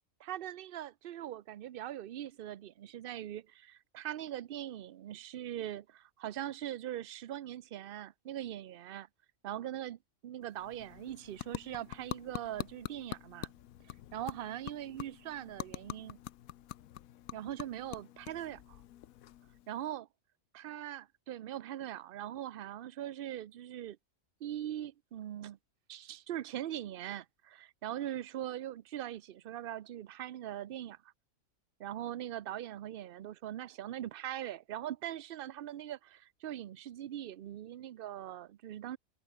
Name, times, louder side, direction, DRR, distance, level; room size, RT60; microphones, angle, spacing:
voice 1, 0.2-9.1 9.4-13.5 14.1-16.2 17.3-18.8 19.7-20.1 20.5-24.0 24.4-25.6 25.9-31.0 31.8-39.0, right 12 dB, 60° right, 0.6 m, -41 dB
sound 1, 10.4-19.9, left 13 dB, 85° left, 1.1 m, -46 dB
omnidirectional pair, 1.4 m